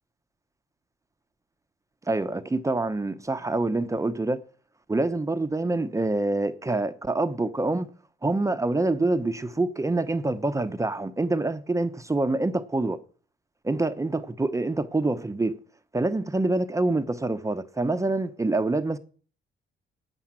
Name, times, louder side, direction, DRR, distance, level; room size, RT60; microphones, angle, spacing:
voice 1, 2.1-4.4 4.9-7.9 8.2-13.0 13.6-15.6 15.9-19.0, right 2 dB, 15° right, 0.8 m, -26 dB
8.9 x 7.3 x 8.8 m
cardioid pair, 90°, 20 cm